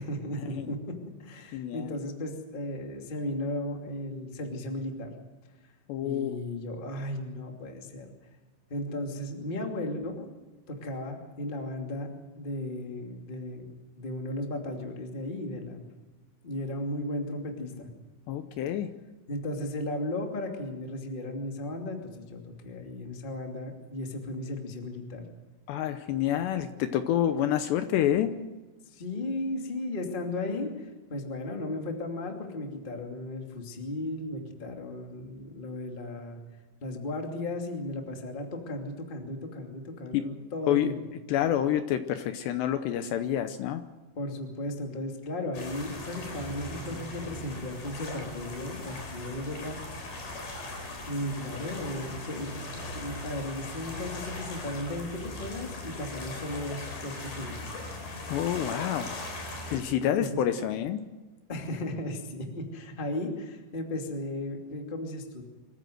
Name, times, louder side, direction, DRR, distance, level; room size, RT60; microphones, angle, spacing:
voice 1, 0.0-5.1 6.0-8.1 8.7-10.3 10.7-15.9 16.4-17.9 19.3-25.3 28.8-36.4 36.8-41.0 44.2-49.8 51.1-57.6 60.2-60.5 61.5-65.4, left 1 dB, 20° left, 2 dB, 1.5 m, -35 dB
voice 2, 1.5-1.9 5.9-6.3 18.3-18.9 25.7-28.3 40.1-40.3 40.7-40.9 41.3-43.8 58.3-59.1 59.7-61.0, left 11 dB, 75° left, 9 dB, 2.7 m, -28 dB
sound 1, 45.5-59.8, left 2 dB, 55° left, 5.9 m, -39 dB
25.5 x 15.0 x 7.9 m, 1.2 s
omnidirectional pair, 5.4 m